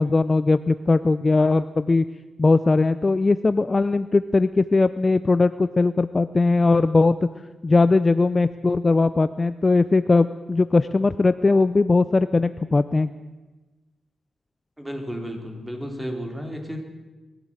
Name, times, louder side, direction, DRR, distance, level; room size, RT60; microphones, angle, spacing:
voice 1, 0.0-2.0 2.4-7.3 7.6-13.1, left 3 dB, 30° left, 13 dB, 0.6 m, -19 dB
voice 2, 14.8-16.8, equal, 10° right, 3 dB, 4.0 m, -32 dB
21.5 x 15.0 x 8.9 m, 1.2 s
wide cardioid pair, 105°, 0 cm